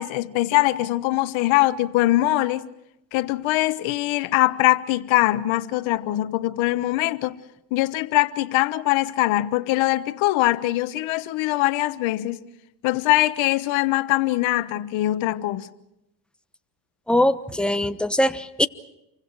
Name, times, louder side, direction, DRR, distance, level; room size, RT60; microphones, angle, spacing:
voice 1, 0.0-2.6 3.1-7.4 7.7-12.4 12.8-15.7, left 17 dB, 70° left, 1.4 m, -22 dB
voice 2, 17.1-18.7, left 1 dB, ahead, 1.0 m, -21 dB
29.5 x 24.5 x 4.9 m
supercardioid pair, 105°, 48 cm